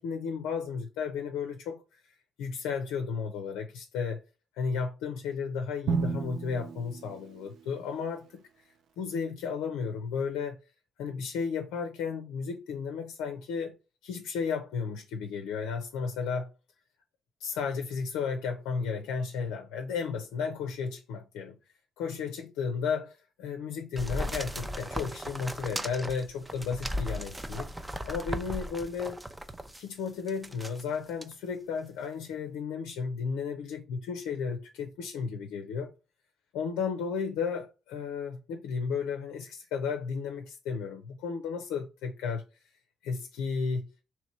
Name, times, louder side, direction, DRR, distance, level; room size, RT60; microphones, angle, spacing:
voice 1, 0.0-1.8 2.4-4.2 4.5-8.4 9.0-10.6 11.0-13.7 14.0-16.5 17.4-21.6 22.0-27.7 28.0-29.2 29.8-35.9 36.5-42.4 43.0-43.9, left 5 dB, 85° left, 0.4 m, -33 dB
Drum, 5.9-7.9, right 5 dB, 70° right, 0.5 m, -33 dB
sound 1, 24.0-29.8 30.3-30.8 31.2-31.3, equal, 20° right, 0.5 m, -37 dB
3.0 x 3.0 x 4.5 m
hypercardioid pair, 50°, 0 cm